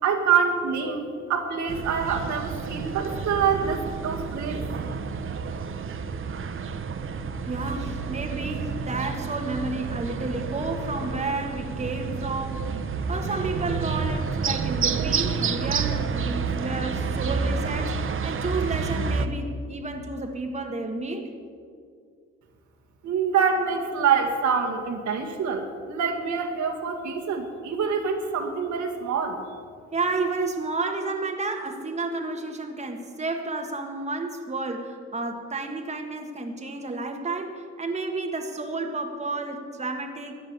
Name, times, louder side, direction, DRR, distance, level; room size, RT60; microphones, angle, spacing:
voice 1, 0.0-4.7 23.0-29.4, right 6 dB, 70° right, 1 dB, 2.1 m, -26 dB
sound 1, 1.7-19.3, right 5 dB, 45° right, 0.9 m, -29 dB
voice 2, 7.4-21.3 29.9-40.4, right 3 dB, 20° right, 3 dB, 1.5 m, -31 dB
14.0 x 9.2 x 8.1 m, 2.2 s
cardioid pair, 90°, 30 cm